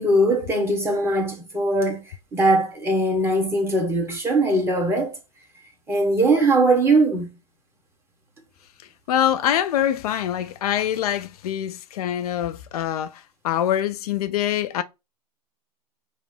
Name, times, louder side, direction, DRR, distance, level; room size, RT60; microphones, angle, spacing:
voice 1, 0.0-2.0 2.3-5.2 5.9-7.3, right 2 dB, 10° right, 1.2 m, -20 dB
voice 2, 9.1-14.8, left 11 dB, 65° left, 0.5 m, -24 dB
5.3 x 2.0 x 4.8 m
hypercardioid pair, 130°, 21 cm